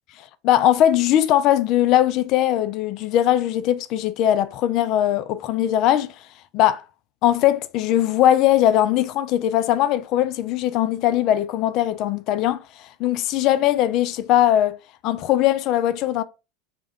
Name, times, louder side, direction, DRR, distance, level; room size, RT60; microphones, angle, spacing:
voice 1, 0.4-6.1 6.5-6.8 7.2-14.8 15.0-16.2, left 12 dB, 55° left, 0.3 m, -20 dB
2.2 x 2.1 x 3.4 m
hypercardioid pair, 90°, 0 cm